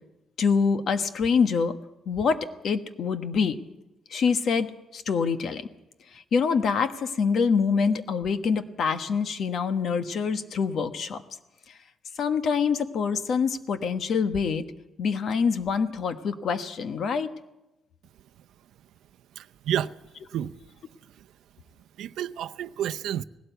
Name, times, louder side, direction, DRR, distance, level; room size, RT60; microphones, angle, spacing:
voice 1, 0.4-1.8 2.1-3.6 4.1-5.7 6.3-11.2 12.2-14.6 15.0-17.3, left 5 dB, 50° left, 1.2 m, -25 dB
voice 2, 19.4-19.9 20.3-20.5 22.0-23.2, right 10 dB, 85° right, 0.6 m, -30 dB
19.5 x 17.0 x 8.1 m
cardioid pair, 160°, 0 cm